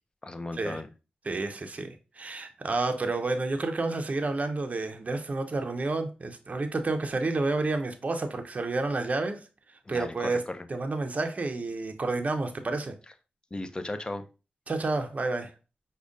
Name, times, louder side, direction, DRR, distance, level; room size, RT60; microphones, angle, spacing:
voice 1, 0.2-0.9 9.9-10.6 13.5-14.3, left 2 dB, 25° left, 0.4 m, -36 dB
voice 2, 1.2-9.4 9.9-10.4 10.7-12.9 14.7-15.5, right 3 dB, 40° right, 0.5 m, -30 dB
4.9 x 2.1 x 2.5 m
cardioid pair, 55°, 4 cm